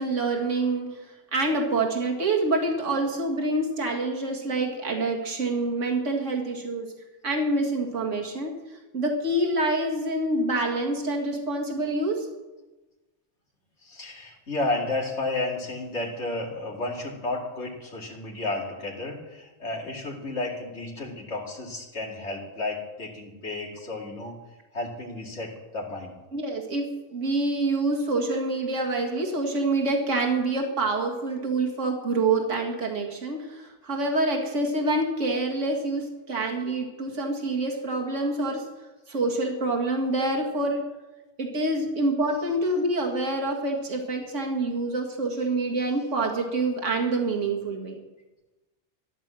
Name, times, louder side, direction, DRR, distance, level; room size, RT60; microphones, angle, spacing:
voice 1, 0.0-6.9 7.2-8.5 8.9-12.3 26.3-38.7 39.1-40.9 41.4-48.0, right 2 dB, 85° right, 1 dB, 2.3 m, -26 dB
voice 2, 13.8-24.4 24.7-26.1, left 2 dB, 70° left, -2 dB, 2.9 m, -32 dB
13.5 x 11.0 x 7.6 m, 1.1 s
omnidirectional pair, 1.2 m